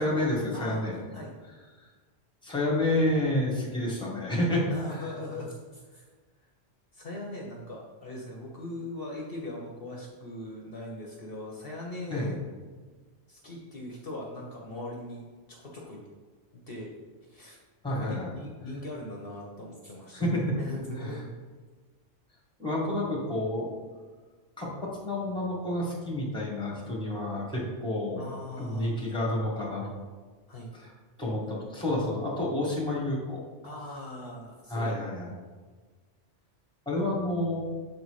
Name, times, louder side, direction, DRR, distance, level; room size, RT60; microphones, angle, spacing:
voice 1, 0.0-1.0 2.4-4.7 12.1-12.3 17.8-18.3 20.1-20.5 22.6-23.7 24.6-28.3 28.6-29.9 30.7-30.9 31.2-33.4 34.7-35.3 36.9-37.6, left 1 dB, 5° left, -4 dB, 1.8 m, -29 dB
voice 2, 0.5-1.3 4.7-6.1 6.9-12.4 13.3-15.2 15.5-16.1 16.5-16.9 17.2-17.6 17.9-20.3 20.6-21.3 28.2-28.9 30.5-30.7 33.6-35.0, left 1 dB, 55° left, -2 dB, 1.1 m, -40 dB
7.1 x 4.1 x 4.7 m, 1.4 s
omnidirectional pair, 1.2 m